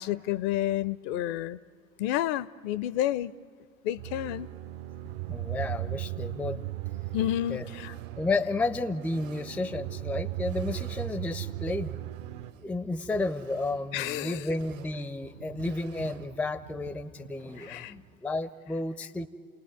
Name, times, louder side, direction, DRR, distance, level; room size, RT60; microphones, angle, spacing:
voice 1, 0.0-1.6 2.0-3.3 3.8-4.5 7.1-7.9 13.9-14.4 17.6-17.9, left 13 dB, 45° left, 20 dB, 0.6 m, -30 dB
sound 1, 4.0-12.5, right 16 dB, 55° right, 0.8 m, -37 dB
voice 2, 5.3-6.6 7.5-7.7 8.2-12.0 12.6-19.3, left 2 dB, 5° left, 17 dB, 0.5 m, -32 dB
sound 2, 7.5-18.2, right 8 dB, 70° right, 1.6 m, -51 dB
30.0 x 18.5 x 9.3 m, 2.4 s
figure-of-eight pair, 85°, 41 cm